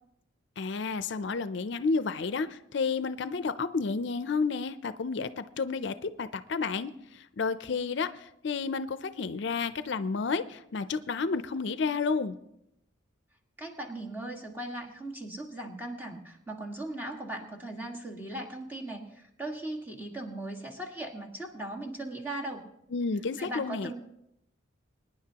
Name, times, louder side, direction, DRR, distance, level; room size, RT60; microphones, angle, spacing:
voice 1, 0.6-12.4 22.9-23.9, left 4 dB, 60° left, 12 dB, 0.5 m, -31 dB
voice 2, 13.6-22.6 23.4-23.9, right 1 dB, 10° right, -1 dB, 1.6 m, -38 dB
24.5 x 10.0 x 2.9 m, 0.79 s
head